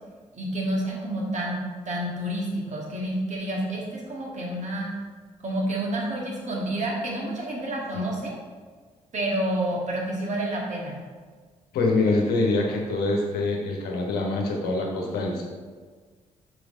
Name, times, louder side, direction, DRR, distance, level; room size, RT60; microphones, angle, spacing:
voice 1, 0.3-1.6 1.9-4.9 5.4-8.4 9.1-10.9, right 1 dB, 40° right, -3 dB, 1.9 m, -29 dB
voice 2, 11.7-15.4, left 2 dB, 60° left, 0 dB, 1.2 m, -25 dB
6.9 x 4.7 x 3.9 m, 1.5 s
figure-of-eight pair, 40°, 18 cm